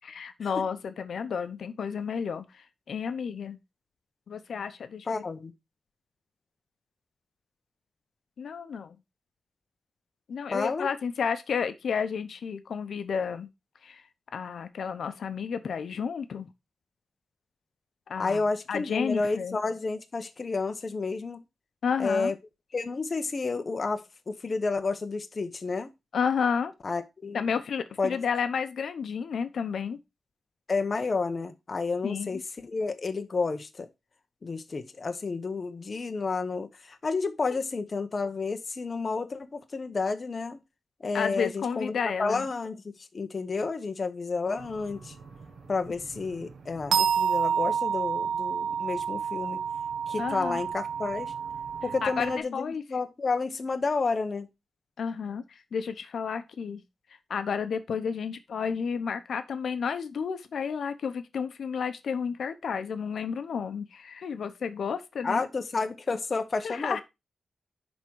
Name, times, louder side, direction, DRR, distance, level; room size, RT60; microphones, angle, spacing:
voice 1, 0.0-3.6 4.3-5.2 8.4-9.0 10.3-13.5 13.8-14.0 14.3-16.5 18.1-18.4 18.7-19.6 21.8-22.3 26.1-26.7 27.3-30.0 32.0-32.4 41.1-42.5 50.2-50.6 52.0-52.8 55.0-55.4 55.7-56.8 57.3-65.4 66.6-67.0, left 6 dB, 75° left, 0.8 m, -31 dB
voice 2, 5.1-5.5 10.5-10.9 18.2-21.4 22.0-22.3 22.7-25.9 26.8-27.4 28.0-28.2 30.7-33.9 34.4-40.6 41.0-41.9 42.2-42.8 43.1-45.1 45.7-49.6 50.1-51.3 51.8-54.5 65.2-67.0, left 4 dB, 35° left, 0.8 m, -30 dB
sound 1, 44.6-52.4, right 7 dB, 80° right, 1.2 m, -30 dB
10.5 x 3.6 x 4.6 m
wide cardioid pair, 150°, 0 cm